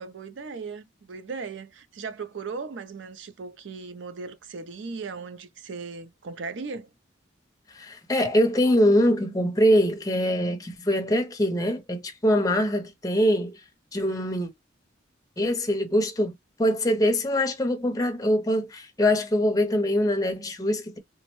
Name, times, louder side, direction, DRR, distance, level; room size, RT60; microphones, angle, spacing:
voice 1, 0.0-6.9, right 4 dB, 70° right, 0.5 m, -37 dB
voice 2, 7.7-13.6 13.9-14.5 15.4-16.3 16.6-21.0, equal, 20° left, 0.5 m, -23 dB
3.5 x 2.1 x 3.0 m
head